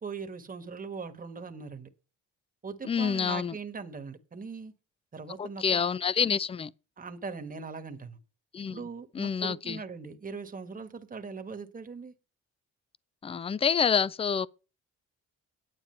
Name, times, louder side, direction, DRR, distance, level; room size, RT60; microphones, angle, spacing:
voice 1, 0.0-1.9 2.6-4.7 5.1-5.6 6.2-6.3 7.0-8.2 8.7-12.1, right 5 dB, 30° right, 1.4 m, -40 dB
voice 2, 2.8-3.5 5.4-6.7 8.5-8.8 9.1-9.8 13.2-14.5, left 6 dB, 20° left, 0.4 m, -27 dB
9.6 x 8.7 x 4.5 m
cardioid pair, 90°, 30 cm